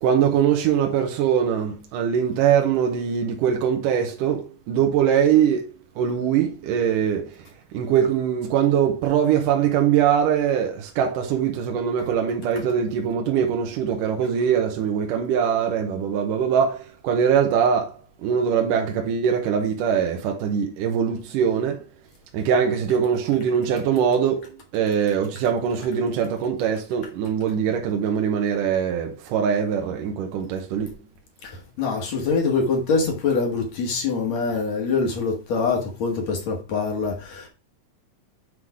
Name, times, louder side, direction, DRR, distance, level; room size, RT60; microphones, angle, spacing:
voice 1, 0.0-5.6 6.0-7.2 7.7-17.9 18.2-21.8 22.3-30.9, right 8 dB, 75° right, 2.5 m, -22 dB
voice 2, 31.4-37.5, left 4 dB, 55° left, 2.6 m, -24 dB
8.1 x 3.8 x 4.8 m
omnidirectional pair, 3.9 m